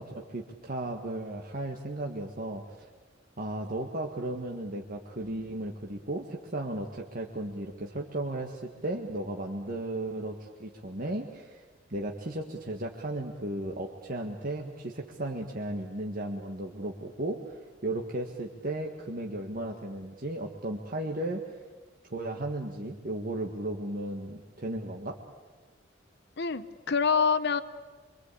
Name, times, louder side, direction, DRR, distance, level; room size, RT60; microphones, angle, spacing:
voice 1, 0.0-2.6 3.4-11.6 11.9-21.5 22.1-25.2, right 1 dB, 45° right, 1 dB, 1.7 m, -35 dB
voice 2, 26.4-27.6, left 5 dB, 60° left, 12 dB, 1.0 m, -26 dB
25.5 x 25.0 x 8.5 m, 1.4 s
head